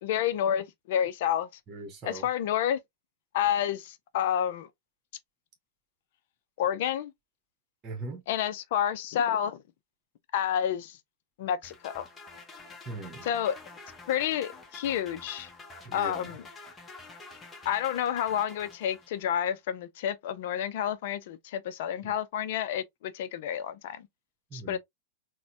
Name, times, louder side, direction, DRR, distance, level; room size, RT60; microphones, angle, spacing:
voice 1, 0.0-1.5 2.0-2.8 3.3-4.7 6.6-7.1 8.3-9.6 10.3-11.0 11.4-12.1 13.2-13.6 14.1-15.5 15.9-16.5 17.6-24.1 24.5-24.8, left 9 dB, 55° left, 0.5 m, -29 dB
voice 2, 1.7-2.3 7.8-8.2 12.9-13.3 15.8-16.3 22.0-22.1 24.5-24.8, right 2 dB, 25° right, 1.1 m, -40 dB
sound 1, 11.6-19.4, left 3 dB, 15° left, 0.9 m, -48 dB
4.0 x 2.2 x 2.7 m
figure-of-eight pair, 95°, 0 cm